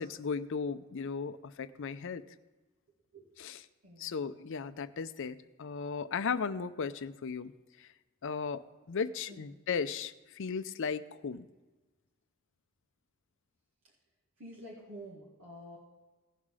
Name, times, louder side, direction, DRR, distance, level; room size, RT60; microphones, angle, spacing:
voice 1, 0.0-2.2 3.4-3.6 4.0-7.5 7.8-7.9 8.2-8.6 8.9-11.5, left 5 dB, 60° left, 13 dB, 0.5 m, -36 dB
voice 2, 3.8-4.2 9.3-9.4 14.4-15.8, equal, 70° right, -3 dB, 1.9 m, -48 dB
17.0 x 5.8 x 4.7 m, 1.2 s
head